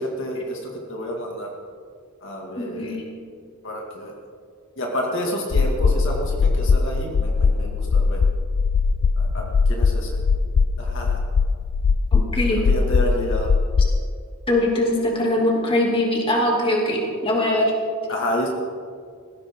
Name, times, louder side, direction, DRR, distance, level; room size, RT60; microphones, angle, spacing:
voice 1, 0.0-1.5 2.2-3.0 3.6-4.1 4.8-8.2 9.2-10.1 10.8-11.2 12.5-13.5 18.1-18.5, equal, 60° left, -1 dB, 2.2 m, -29 dB
voice 2, 2.5-3.0 12.1-12.6 14.5-17.7, left 1 dB, 25° left, -1 dB, 2.7 m, -21 dB
sound 1, 5.5-14.0, left 4 dB, 80° left, 0.4 m, -20 dB
19.0 x 15.5 x 3.8 m, 2.2 s
head